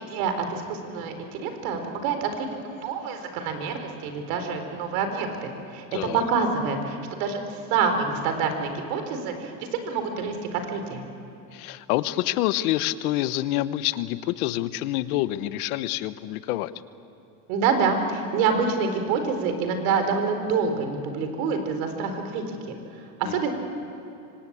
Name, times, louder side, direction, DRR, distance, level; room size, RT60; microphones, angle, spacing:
voice 1, 0.0-9.5 9.8-11.0 17.5-22.6 23.2-23.5, right 5 dB, 80° right, 6 dB, 4.2 m, -27 dB
voice 2, 5.9-6.2 11.5-16.7 23.2-23.5, left 15 dB, 90° left, 14 dB, 1.2 m, -27 dB
26.0 x 25.5 x 8.6 m, 2.9 s
cardioid pair, 130°, 42 cm